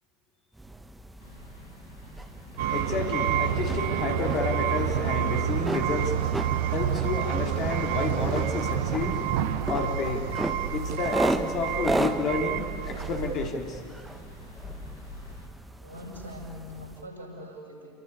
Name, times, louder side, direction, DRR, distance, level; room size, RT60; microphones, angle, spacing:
sound 1, 0.6-17.0, right 1 dB, 10° right, 1.5 m, -36 dB
sound 2, 1.2-15.5, left 2 dB, 75° left, 4.6 m, -48 dB
sound 3, 2.6-13.5, right 9 dB, 60° right, 1.3 m, -28 dB
voice 1, 2.7-6.1 6.7-9.2 9.7-10.3 10.7-13.8, left 4 dB, 40° left, 3 dB, 3.7 m, -31 dB
voice 2, 15.8-17.9, left 1 dB, 90° left, -2 dB, 7.5 m, -42 dB
28.5 x 23.0 x 8.5 m, 2.2 s
figure-of-eight pair, 70°, 0 cm